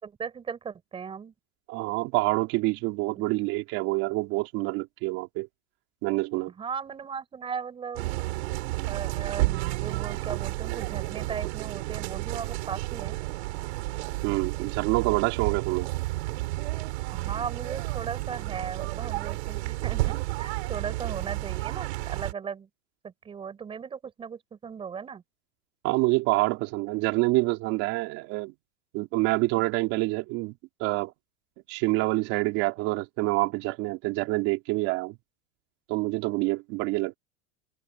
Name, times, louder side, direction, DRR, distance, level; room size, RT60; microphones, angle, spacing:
voice 1, 0.0-1.3 6.6-8.2 8.9-13.2 17.1-22.7 23.0-25.2, right 6 dB, 15° right, 6.5 m, -37 dB
voice 2, 1.7-5.5 6.0-6.5 14.2-15.9 25.8-28.5 28.9-30.5 30.8-31.1 31.7-35.2 35.9-37.2, right 22 dB, 35° right, 3.7 m, -27 dB
sound 1, 8.0-22.3, right 20 dB, 50° right, 5.2 m, -31 dB
supercardioid pair, 175°, 41 cm